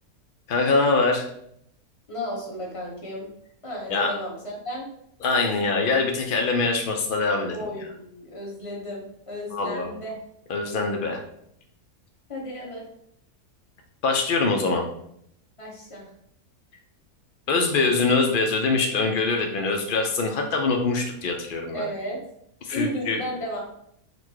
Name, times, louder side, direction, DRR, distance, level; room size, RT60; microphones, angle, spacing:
voice 1, 0.5-1.3 3.9-4.1 5.2-7.9 9.5-9.9 10.5-11.2 14.0-14.8 17.5-21.8 22.6-23.2, left 3 dB, 90° left, 3 dB, 0.4 m, -23 dB
voice 2, 2.1-3.3 3.6-4.9 7.5-10.1 12.3-12.8 15.6-16.1 21.7-22.2 22.7-23.6, equal, 25° left, -3 dB, 1.0 m, -33 dB
4.1 x 2.2 x 4.5 m, 0.72 s
omnidirectional pair, 1.5 m